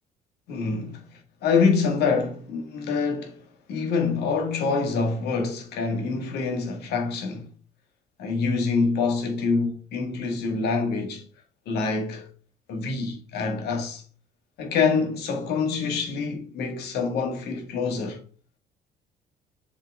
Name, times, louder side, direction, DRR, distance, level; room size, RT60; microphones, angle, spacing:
voice 1, 0.5-7.5 8.2-11.2 11.7-12.3 12.7-14.0 14.6-18.2, left 4 dB, 75° left, 1.9 m, -26 dB
7.3 x 3.9 x 3.6 m
cardioid pair, 110°, 17 cm